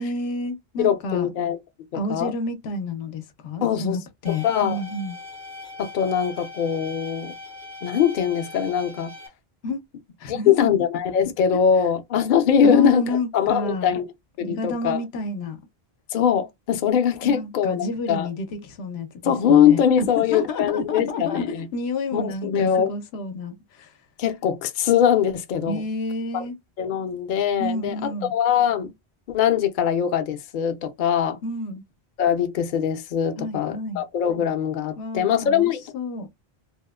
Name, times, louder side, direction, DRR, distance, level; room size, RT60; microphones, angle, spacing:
voice 1, 0.0-1.3 1.9-5.2 9.6-9.8 10.2-10.8 12.6-13.9 14.4-15.6 17.2-23.9 25.7-26.5 27.6-28.3 31.4-31.8 33.4-34.0 35.0-36.3, left 2 dB, 90° left, 0.8 m, -30 dB
voice 2, 0.8-1.6 1.9-2.3 3.6-4.0 4.3-4.8 5.8-7.3 7.8-9.1 10.3-13.0 13.3-14.1 14.4-15.0 16.1-18.3 19.2-21.7 22.1-22.9 24.2-25.8 26.3-26.4 26.8-28.9 29.3-31.4 32.2-35.8, left 8 dB, 60° left, 0.6 m, -22 dB
sound 1, 4.2-9.3, left 2 dB, 70° right, 1.2 m, -40 dB
2.9 x 2.0 x 2.2 m
omnidirectional pair, 1.1 m